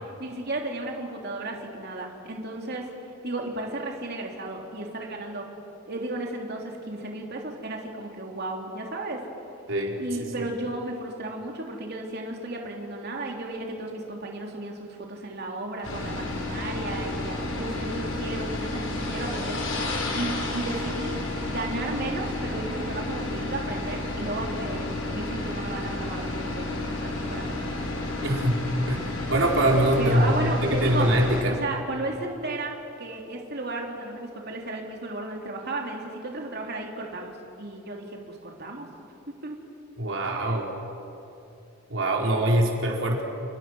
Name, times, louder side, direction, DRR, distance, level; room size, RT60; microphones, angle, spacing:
voice 1, 0.2-2.9 3.2-5.4 5.9-9.2 10.0-27.9 30.0-31.1 31.5-38.9 39.4-39.6 40.4-40.6, right 2 dB, 55° right, 0 dB, 3.3 m, -34 dB
sound 1, 15.8-31.4, left 2 dB, 90° left, 4.7 m, -31 dB
voice 2, 28.2-29.1 29.3-31.6 40.0-40.7 41.9-43.2, right 1 dB, 70° right, -1 dB, 4.4 m, -23 dB
29.5 x 29.0 x 6.3 m, 2.8 s
head